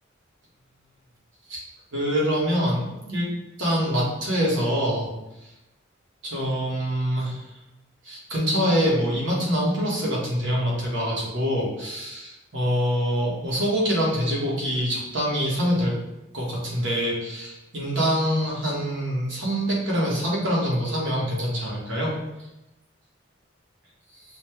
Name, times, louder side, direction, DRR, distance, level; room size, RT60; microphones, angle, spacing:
voice 1, 1.9-3.3 3.6-5.1 6.2-7.4 8.0-15.9 16.3-22.1, equal, 75° right, -4 dB, 1.3 m, -25 dB
5.3 x 2.2 x 3.2 m, 0.96 s
head